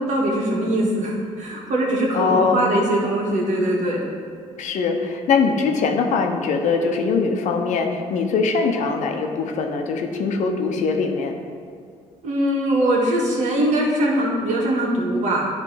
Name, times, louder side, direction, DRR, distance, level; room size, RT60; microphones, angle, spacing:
voice 1, 0.0-4.1 12.2-15.5, right 1 dB, 65° right, -2 dB, 1.7 m, -21 dB
voice 2, 2.1-2.7 4.6-11.3, left 4 dB, 65° left, 4 dB, 0.8 m, -22 dB
10.0 x 3.4 x 4.6 m, 2.1 s
supercardioid pair, 65°, 13 cm